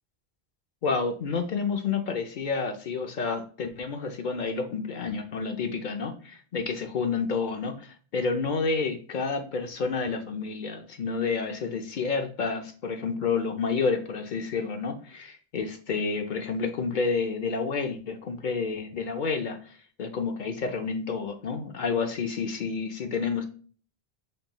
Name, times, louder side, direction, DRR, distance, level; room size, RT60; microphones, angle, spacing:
voice 1, 0.8-23.4, left 4 dB, 55° left, 6 dB, 0.7 m, -29 dB
5.3 x 3.0 x 2.2 m, 0.42 s
omnidirectional pair, 1.1 m